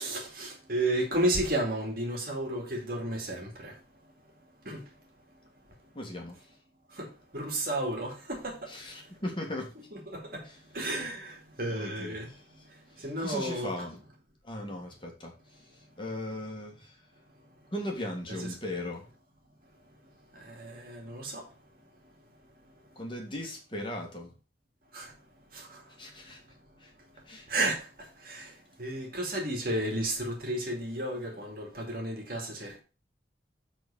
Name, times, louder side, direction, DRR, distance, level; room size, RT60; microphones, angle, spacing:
voice 1, 0.0-3.8 4.6-4.8 6.9-8.7 9.9-10.5 10.7-12.3 13.0-13.7 18.4-18.5 20.3-21.5 24.9-25.1 25.5-25.8 27.5-32.8, right 1 dB, 50° right, 2.3 m, -33 dB
voice 2, 6.0-6.4 8.7-9.7 10.4-10.6 11.7-12.4 13.2-14.0 14.4-15.3 16.0-17.0 17.7-19.0 23.0-24.3 26.0-26.4 26.8-26.9 27.3-27.5, left 1 dB, 25° left, 1.9 m, -37 dB
7.8 x 4.1 x 5.5 m
head